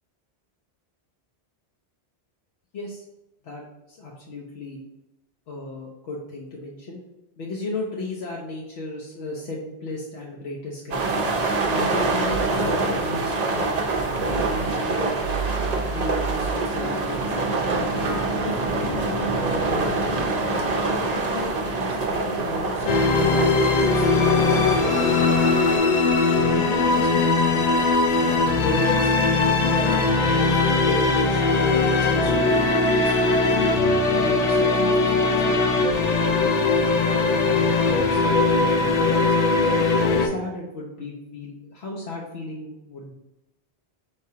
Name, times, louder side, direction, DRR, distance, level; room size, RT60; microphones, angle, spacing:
voice 1, 2.7-3.1 3.4-4.8 5.5-7.0 7.4-11.0 11.7-13.7 14.2-15.2 15.6-17.4 17.9-18.1 18.4-20.3 20.7-25.6 26.2-27.8 28.1-30.6 30.8-32.7 33.0-33.7 34.0-39.4 40.1-43.1, left 2 dB, 75° left, -2 dB, 0.9 m, -35 dB
sound 1, 10.9-25.8, right 3 dB, 45° right, 0.6 m, -25 dB
sound 2, 22.9-40.3, left 3 dB, 55° left, 0.4 m, -20 dB
4.5 x 3.3 x 2.7 m, 0.93 s
omnidirectional pair, 1.1 m